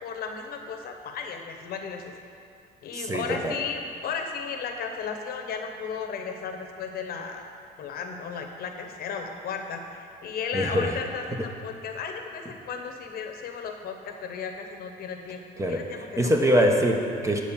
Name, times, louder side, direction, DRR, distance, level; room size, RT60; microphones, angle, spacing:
voice 1, 0.0-2.1 2.8-7.4 7.8-9.8 10.2-15.4 15.7-16.3, left 6 dB, 65° left, 5 dB, 0.9 m, -34 dB
voice 2, 2.9-3.6 10.5-10.9 11.3-11.4 15.6-15.8 16.2-17.4, equal, 15° right, 3 dB, 0.8 m, -23 dB
8.7 x 4.4 x 7.2 m, 2.5 s
cardioid pair, 110°, 17 cm